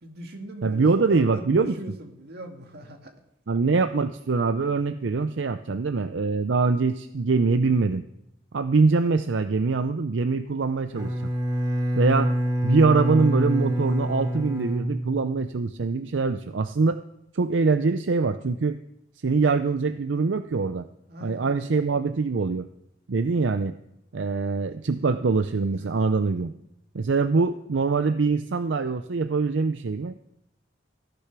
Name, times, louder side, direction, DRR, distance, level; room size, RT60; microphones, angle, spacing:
voice 1, 0.0-3.1 21.1-21.8 25.9-26.1, right 1 dB, 60° right, 3 dB, 2.1 m, -40 dB
voice 2, 0.6-1.8 3.5-8.0 8.5-11.1 11.9-12.3 12.6-17.0 17.3-18.8 19.2-20.9 21.2-22.7 23.1-23.7 24.1-26.5 26.9-30.2, right 4 dB, 85° right, 10 dB, 0.6 m, -23 dB
Bowed string instrument, 10.9-15.7, equal, 20° right, 2.9 m, -26 dB
15.5 x 10.0 x 6.0 m, 0.79 s
head